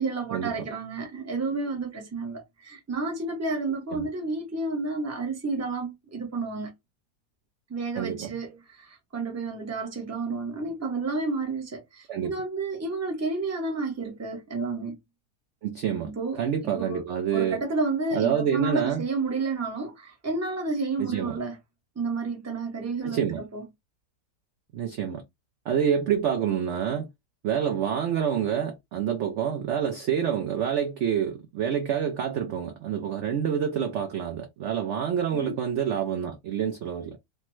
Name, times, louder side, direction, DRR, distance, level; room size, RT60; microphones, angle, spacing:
voice 1, 0.0-6.7 7.7-15.0 16.0-17.0 17.3-21.6 22.0-23.6 35.3-35.6, right 3 dB, 20° right, 0.4 m, -31 dB
voice 2, 8.0-8.3 12.1-12.3 15.6-17.6 18.1-19.0 21.0-21.4 23.0-23.4 24.7-25.2 25.7-27.1 27.4-37.2, right 8 dB, 80° right, 0.6 m, -27 dB
3.3 x 2.0 x 3.0 m
omnidirectional pair, 1.8 m